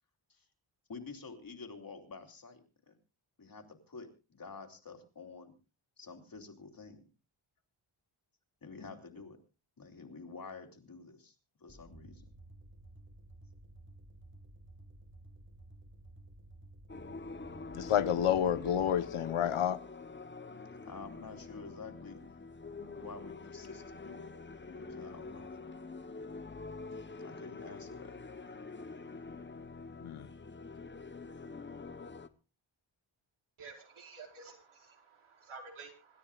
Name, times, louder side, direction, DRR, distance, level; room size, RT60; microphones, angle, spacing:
voice 1, 0.9-3.0 3.4-5.5 6.0-7.0 8.6-9.4 9.8-11.3 11.6-12.3 20.9-22.2 22.8-24.3 24.7-25.5 27.2-28.2, left 4 dB, 45° left, 3.2 m, -49 dB
sound 1, 11.7-19.0, right 1 dB, 25° right, 1.9 m, -54 dB
sound 2, 16.9-32.3, left 3 dB, 25° left, 1.0 m, -46 dB
voice 2, 17.7-19.8 30.0-30.3, left 9 dB, 90° left, 1.1 m, -29 dB
voice 3, 33.6-36.2, right 4 dB, 75° right, 4.9 m, -51 dB
26.5 x 13.0 x 2.4 m
wide cardioid pair, 155°, 49 cm